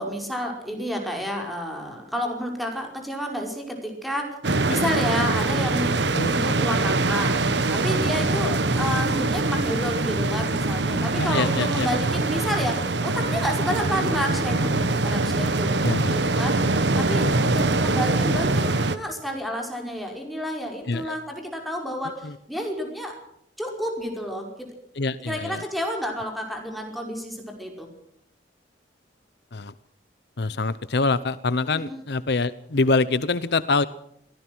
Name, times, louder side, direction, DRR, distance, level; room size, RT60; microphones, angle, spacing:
voice 1, 0.0-4.4 4.7-6.0 6.3-7.4 7.7-16.6 17.0-23.2 23.6-24.7 25.2-27.9 31.7-32.0, equal, ahead, 2 dB, 5.1 m, -30 dB
sound 1, 4.4-19.0, right 2 dB, 75° right, 1.3 m, -23 dB
voice 2, 11.1-11.9 14.0-14.1 15.8-16.2 20.9-21.2 22.2-22.3 25.0-25.6 29.5-29.7 30.4-33.8, left 3 dB, 65° left, 15 dB, 0.8 m, -25 dB
23.5 x 18.0 x 6.2 m, 0.70 s
head